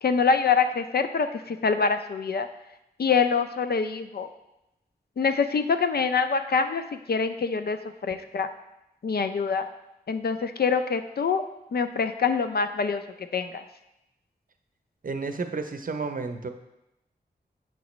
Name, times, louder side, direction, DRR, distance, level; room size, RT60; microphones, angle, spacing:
voice 1, 0.0-2.5 3.0-4.3 5.2-6.8 7.1-8.5 9.0-9.7 10.1-11.4 11.7-13.6, left 5 dB, 65° left, 9 dB, 0.5 m, -25 dB
voice 2, 15.0-16.5, right 4 dB, 55° right, 7 dB, 0.6 m, -31 dB
7.4 x 5.8 x 3.1 m, 0.90 s
wide cardioid pair, 65°, 17 cm